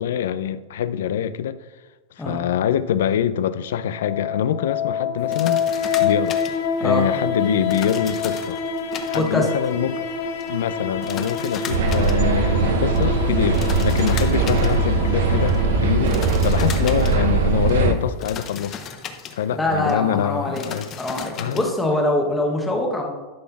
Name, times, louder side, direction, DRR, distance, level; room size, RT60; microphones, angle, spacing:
voice 1, 0.0-1.6 2.2-5.6 6.0-6.4 6.8-8.6 9.1-10.1 10.5-18.8 19.3-20.9 21.4-21.7, left 9 dB, 75° left, 0.5 m, -24 dB
sound 1, 3.9-16.7, left 5 dB, 55° left, 1.3 m, -27 dB
sound 2, 5.2-21.9, left 7 dB, 20° left, 0.6 m, -38 dB
voice 2, 9.1-9.5 19.3-20.6 21.0-23.1, left 1 dB, 5° left, 1.0 m, -23 dB
sound 3, 11.7-17.9, right 3 dB, 70° right, 1.0 m, -20 dB
11.5 x 4.3 x 5.9 m
supercardioid pair, 180°, 0 cm